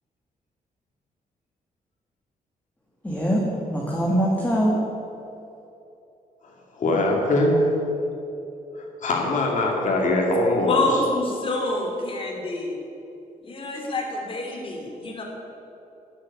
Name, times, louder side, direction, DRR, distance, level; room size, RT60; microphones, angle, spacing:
voice 1, 3.0-3.4 3.7-4.8, equal, 10° left, -3 dB, 2.0 m, -22 dB
voice 2, 6.8-7.6 9.0-10.8, left 2 dB, 60° left, 0 dB, 2.4 m, -21 dB
voice 3, 10.7-12.8 13.4-15.2, left 2 dB, 40° left, 0 dB, 3.0 m, -27 dB
13.0 x 7.4 x 9.8 m, 2.8 s
cardioid pair, 115°, 15 cm